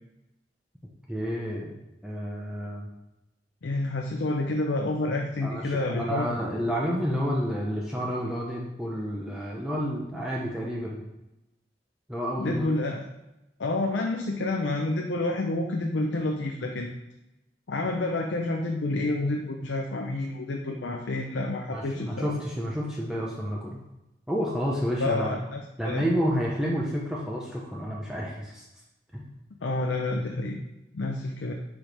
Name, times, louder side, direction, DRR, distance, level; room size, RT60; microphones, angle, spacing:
voice 1, 1.1-1.7 2.0-2.9 5.4-11.1 12.1-12.7 21.7-23.8 24.3-25.4 25.8-28.6 29.1-29.3, equal, 5° right, -4 dB, 0.6 m, -30 dB
voice 2, 3.6-6.3 12.4-13.0 13.6-16.9 17.7-22.3 25.0-26.0 29.6-30.6 30.9-31.5, left 2 dB, 85° left, 2 dB, 0.6 m, -29 dB
6.2 x 4.8 x 3.3 m, 0.94 s
head